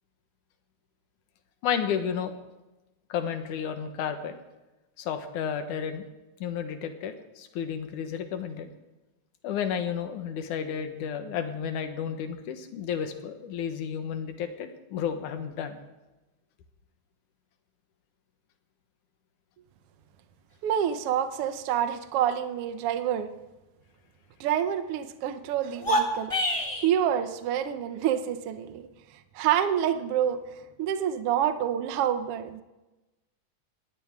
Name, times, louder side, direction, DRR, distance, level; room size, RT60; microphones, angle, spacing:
voice 1, 1.6-2.3 3.1-4.3 5.0-6.0 6.4-8.7 9.4-15.8, left 8 dB, 75° left, 7 dB, 2.7 m, -32 dB
voice 2, 20.6-23.3 24.4-26.3 26.8-28.9 29.3-30.4 30.8-32.6, right 10 dB, 70° right, 10 dB, 1.4 m, -27 dB
sound 1, 25.7-26.9, equal, 15° left, 1.1 m, -26 dB
21.5 x 17.0 x 3.6 m, 1.1 s
omnidirectional pair, 3.6 m